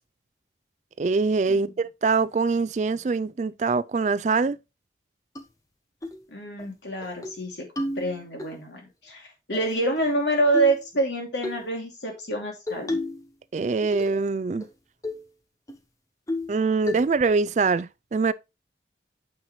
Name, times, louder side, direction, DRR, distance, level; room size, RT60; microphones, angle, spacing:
voice 1, 1.0-4.6 13.5-14.6 16.5-18.3, right 4 dB, 40° right, 0.3 m, -24 dB
sound 1, 5.4-5.5 6.0-6.2 6.6-6.7 7.0-7.4 7.8-8.5 9.5-10.2 10.5-10.8 11.4-11.6 12.7-13.3 13.6-14.3 14.6-14.7 15.0-15.3 15.7-15.8 16.3-16.6 16.9-17.3, left 2 dB, 20° left, 0.9 m, -32 dB
voice 2, 6.3-13.0, right 2 dB, 85° left, 2.7 m, -27 dB
8.7 x 5.6 x 3.1 m
head